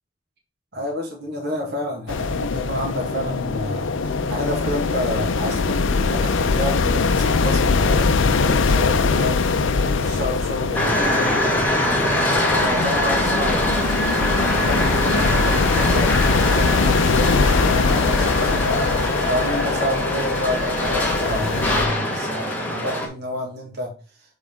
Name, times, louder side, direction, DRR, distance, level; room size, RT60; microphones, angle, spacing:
voice 1, 0.7-3.9 4.3-9.4 9.8-14.0 14.3-23.9, left 1 dB, 55° right, 0 dB, 1.7 m, -29 dB
sound 1, 2.1-21.9, left 4 dB, 65° left, 0.5 m, -22 dB
sound 2, 10.7-23.1, left 1 dB, 10° left, 1.3 m, -23 dB
7.1 x 3.9 x 3.7 m, 0.35 s
head